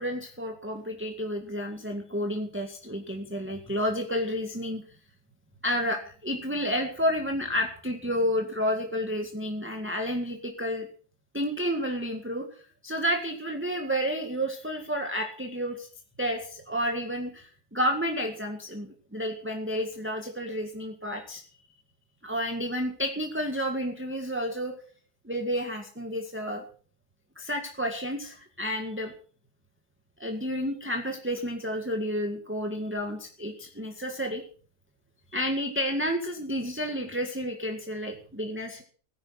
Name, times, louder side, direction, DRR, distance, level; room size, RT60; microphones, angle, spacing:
voice 1, 0.0-4.8 5.6-10.9 11.3-12.5 12.8-15.9 16.2-21.4 22.2-24.7 25.2-26.6 27.4-29.1 30.2-34.4 35.3-38.8, equal, 5° right, 2 dB, 1.9 m, -30 dB
18.0 x 10.0 x 6.0 m, 0.44 s
omnidirectional pair, 1.7 m